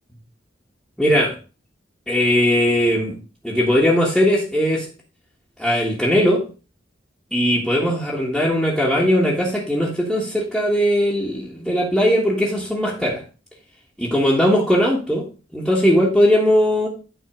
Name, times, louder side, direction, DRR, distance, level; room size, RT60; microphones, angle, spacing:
voice 1, 1.0-1.3 2.1-3.1 3.4-4.9 5.6-6.4 7.3-13.2 14.0-15.3 15.5-16.9, equal, ahead, -6 dB, 1.5 m, -19 dB
9.3 x 3.8 x 4.9 m, 0.33 s
head